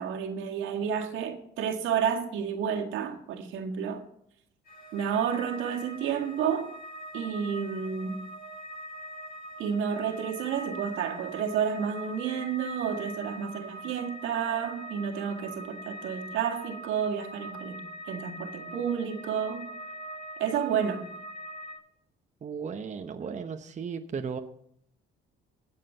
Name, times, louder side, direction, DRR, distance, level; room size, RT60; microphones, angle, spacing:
voice 1, 0.0-4.0 4.9-6.7 7.1-8.2 9.6-19.7 20.4-21.1, right 7 dB, 80° right, 1.9 m, -30 dB
sound 1, 4.7-21.8, right 1 dB, 45° left, 6.7 m, -43 dB
voice 2, 22.4-24.4, right 6 dB, 35° right, 0.9 m, -35 dB
16.5 x 7.5 x 5.6 m
supercardioid pair, 85°, 20 cm